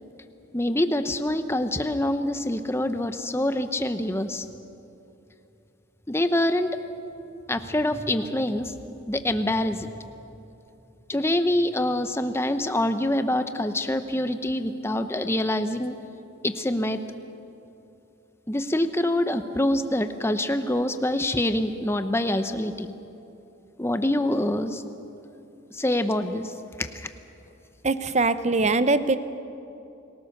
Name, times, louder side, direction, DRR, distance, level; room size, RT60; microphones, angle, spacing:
voice 1, 0.5-4.5 6.1-6.8 7.5-8.7 9.1-9.9 11.1-16.0 16.4-17.0 18.5-22.9 23.8-24.8 25.7-26.5 26.8-27.1, left 1 dB, 10° left, 9 dB, 0.8 m, -25 dB
voice 2, 27.8-29.2, right 3 dB, 35° right, 12 dB, 0.8 m, -22 dB
28.5 x 18.5 x 6.6 m, 2.9 s
head